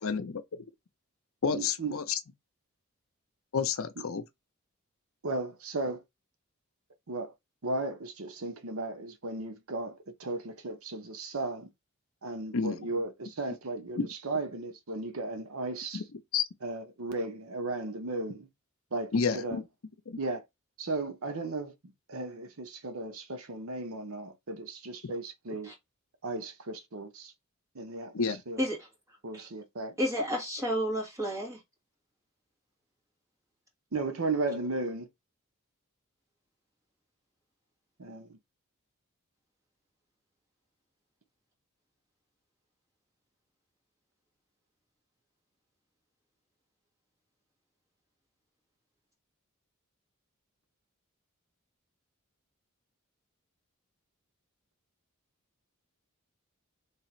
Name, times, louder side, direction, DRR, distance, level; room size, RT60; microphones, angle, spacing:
voice 1, 0.0-0.4 1.4-2.0 3.5-4.2 12.5-13.0 14.0-14.1 15.9-16.0 16.3-16.4 19.1-19.6 20.1-20.2 28.1-28.4, left 5 dB, 65° left, 0.6 m, -30 dB
voice 2, 1.5-1.9 5.2-6.0 7.1-7.3 7.6-11.7 12.2-16.0 16.6-18.5 18.9-19.6 20.2-20.4 20.8-25.7 26.2-27.3 27.7-28.7 29.2-30.0 33.9-35.1 38.0-38.4, right 2 dB, 75° right, 0.9 m, -35 dB
voice 3, 30.0-31.6, equal, 15° right, 1.6 m, -31 dB
3.3 x 2.9 x 4.3 m
head